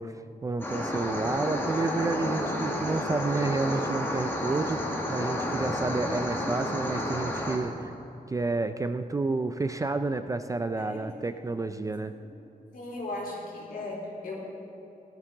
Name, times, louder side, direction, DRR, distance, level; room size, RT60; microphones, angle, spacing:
voice 1, 0.0-7.9 8.3-12.1, right 3 dB, 20° right, 9 dB, 0.3 m, -30 dB
sound 1, 0.6-7.6, left 1 dB, 15° left, 1.6 m, -31 dB
voice 2, 12.7-14.3, left 2 dB, 65° left, -4 dB, 3.7 m, -37 dB
17.0 x 13.5 x 3.8 m, 2.8 s
wide cardioid pair, 180°, 16 cm